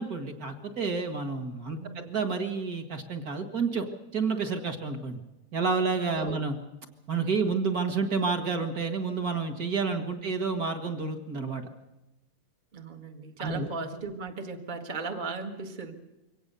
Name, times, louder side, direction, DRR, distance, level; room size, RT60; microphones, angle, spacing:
voice 1, 0.0-3.9 4.1-5.2 5.5-6.5 7.1-11.7 13.4-13.7, right 4 dB, 40° right, 6 dB, 1.4 m, -29 dB
voice 2, 12.7-15.9, right 4 dB, 55° right, 4 dB, 0.5 m, -37 dB
23.5 x 18.0 x 6.8 m, 1.0 s
omnidirectional pair, 3.9 m